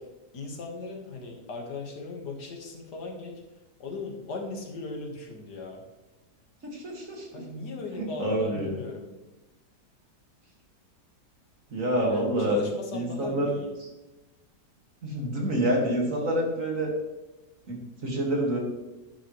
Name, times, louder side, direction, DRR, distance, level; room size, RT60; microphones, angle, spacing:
voice 1, 0.3-3.4 3.8-5.8 7.3-9.1 12.1-13.7, left 3 dB, 75° left, 1 dB, 2.2 m, -38 dB
voice 2, 6.6-7.4 8.0-8.8 11.7-12.6 12.9-13.5 13.8-13.9 15.0-16.9 17.7-18.6, right 1 dB, 50° right, -1 dB, 2.5 m, -27 dB
11.0 x 10.5 x 3.2 m, 1.0 s
omnidirectional pair, 1.8 m